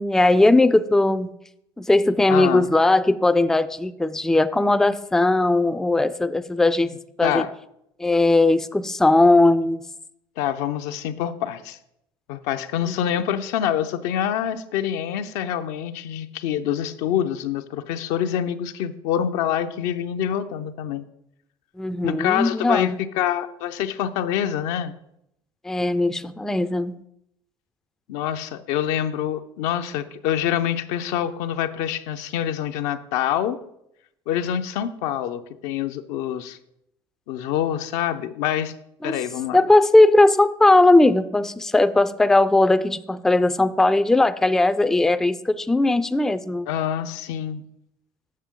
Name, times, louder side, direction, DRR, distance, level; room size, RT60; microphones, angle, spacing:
voice 1, 0.0-1.3 1.8-6.9 7.2-7.4 8.0-9.8 12.9-13.0 21.8-23.0 25.6-27.0 39.0-39.2 39.5-46.7, left 2 dB, 5° left, 13 dB, 0.4 m, -18 dB
voice 2, 2.3-2.7 7.2-7.5 10.4-11.8 12.3-21.1 22.0-24.9 28.1-33.6 34.3-36.6 37.3-38.7 39.0-39.6 46.7-47.6, left 10 dB, 70° left, 9 dB, 0.5 m, -26 dB
7.5 x 6.6 x 3.7 m, 0.79 s
hypercardioid pair, 75°, 12 cm